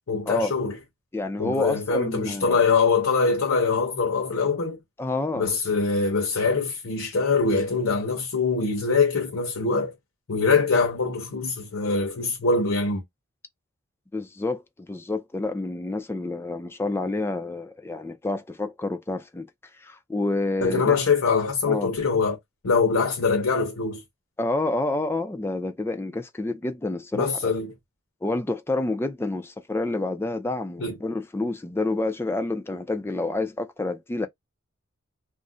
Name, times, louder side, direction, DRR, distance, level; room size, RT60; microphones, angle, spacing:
voice 1, 0.1-0.8 1.4-4.8 5.4-9.9 10.3-13.0 20.6-22.4 22.6-24.0 27.1-27.7 30.8-30.9, left 4 dB, 80° left, 0.7 m, -23 dB
voice 2, 1.1-2.6 5.0-5.5 14.1-19.5 19.8-21.0 21.7-21.9 24.4-27.5 28.2-34.3, left 2 dB, 10° left, 0.3 m, -28 dB
2.4 x 2.0 x 3.7 m
head